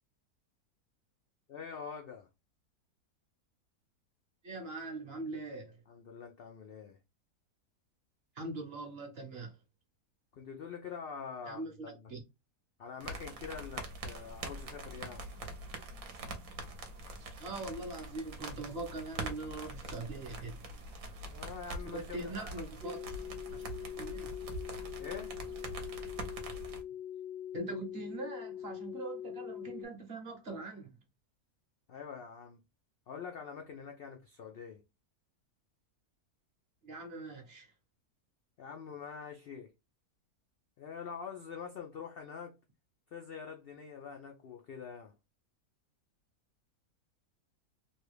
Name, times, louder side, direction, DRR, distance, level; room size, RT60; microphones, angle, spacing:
voice 1, 1.5-2.3 5.9-7.0 10.3-12.1 12.8-15.3 21.3-22.5 25.0-25.3 31.9-32.6 33.1-34.8 38.6-39.7 40.8-42.6 43.1-45.1, left 6 dB, 70° left, 0.5 m, -45 dB
voice 2, 4.4-5.8 8.4-9.5 11.5-12.2 17.4-20.6 21.9-23.0 23.5-23.6 24.0-24.3 27.5-30.9 36.8-37.7, right 2 dB, 45° right, 1.1 m, -42 dB
sound 1, 13.0-26.8, right 2 dB, 65° right, 1.1 m, -44 dB
sound 2, 22.8-29.9, left 10 dB, ahead, 0.5 m, -43 dB
3.2 x 2.3 x 3.1 m
omnidirectional pair, 1.6 m